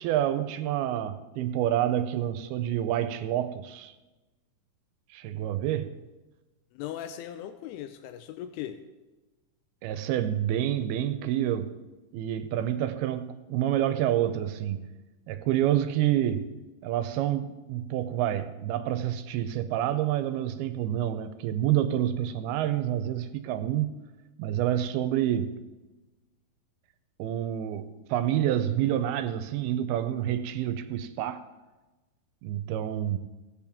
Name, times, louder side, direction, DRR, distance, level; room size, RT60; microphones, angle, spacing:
voice 1, 0.0-3.9 5.1-6.0 9.8-11.8 12.1-14.9 15.3-16.6 16.8-23.9 24.4-25.7 27.2-31.5 32.4-33.2, right 11 dB, 80° right, 2.4 m, -28 dB
voice 2, 6.7-8.8, left 11 dB, 85° left, 2.6 m, -38 dB
18.0 x 7.9 x 3.5 m
omnidirectional pair, 4.5 m